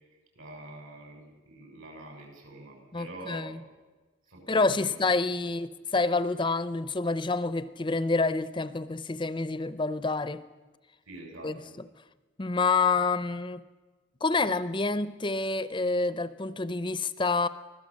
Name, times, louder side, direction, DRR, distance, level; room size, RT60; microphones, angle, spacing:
voice 1, 0.4-3.7 4.3-4.9 11.1-11.7, right 1 dB, 80° right, 7.1 m, -45 dB
voice 2, 2.9-3.6 4.5-10.4 11.4-11.5 12.4-13.6 14.2-17.5, left 3 dB, 25° left, 0.6 m, -28 dB
24.5 x 16.5 x 7.5 m
head